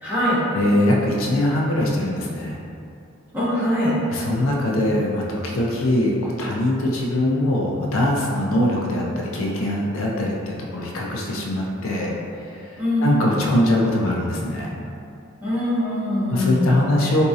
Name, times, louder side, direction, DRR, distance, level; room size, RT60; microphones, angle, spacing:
voice 1, 0.0-0.4 3.3-4.0 12.8-13.4 15.4-16.8, left 1 dB, 10° right, -12 dB, 1.0 m, -23 dB
voice 2, 0.5-2.6 4.1-12.1 12.5-14.8 16.3-17.3, left 1 dB, 75° left, -2 dB, 0.5 m, -22 dB
3.9 x 2.7 x 2.4 m, 2.5 s
head